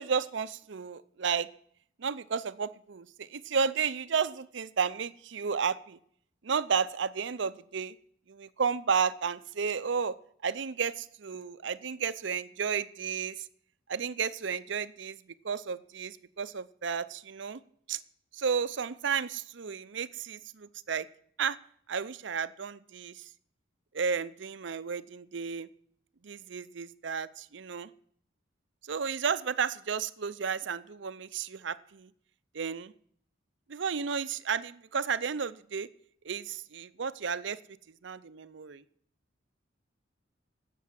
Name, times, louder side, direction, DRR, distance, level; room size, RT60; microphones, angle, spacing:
voice 1, 0.0-1.5 2.0-6.0 6.4-7.9 8.3-10.2 10.4-13.5 13.9-17.6 17.9-18.0 18.3-21.1 21.4-21.6 21.9-23.3 23.9-25.7 26.2-27.9 28.9-32.1 32.5-32.9 33.7-35.9 36.2-37.6 38.0-38.8, right 6 dB, 60° right, 15 dB, 0.6 m, -32 dB
12.0 x 8.3 x 7.6 m, 0.63 s
head